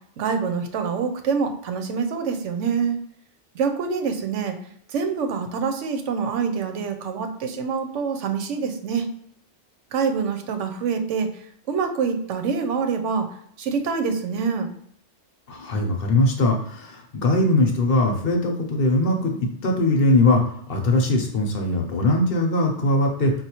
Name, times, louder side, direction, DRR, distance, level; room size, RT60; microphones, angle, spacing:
voice 1, 0.2-3.0 3.5-4.5 4.9-9.1 9.9-13.3 13.6-14.7, right 5 dB, 85° right, 7 dB, 0.9 m, -25 dB
voice 2, 15.5-20.4 20.7-23.3, left 2 dB, 55° left, 2 dB, 0.8 m, -21 dB
4.2 x 2.3 x 2.9 m, 0.69 s
omnidirectional pair, 1.2 m